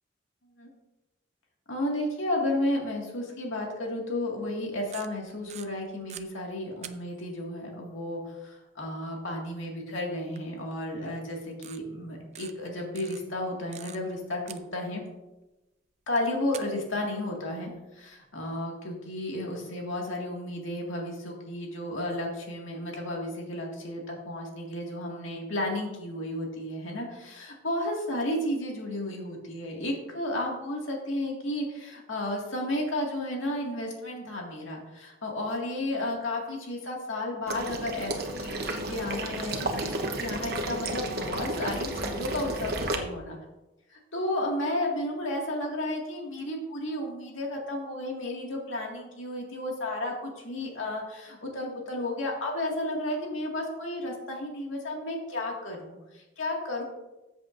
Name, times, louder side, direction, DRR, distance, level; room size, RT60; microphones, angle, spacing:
voice 1, 1.7-15.0 16.1-43.4 43.9-56.8, left 1 dB, 80° left, -1 dB, 2.0 m, -33 dB
sound 1, 4.7-6.3 6.8-7.4 9.2-9.3 10.4-10.5 10.7-10.8 11.5-11.8 12.3-12.5 13.0-14.2 14.5-15.1 16.2-16.3 16.5-18.2, right 10 dB, 35° right, 0.4 m, -45 dB
Water / Liquid, 37.5-43.0, right 2 dB, 50° right, 1.1 m, -32 dB
14.0 x 7.6 x 2.6 m, 1.0 s
head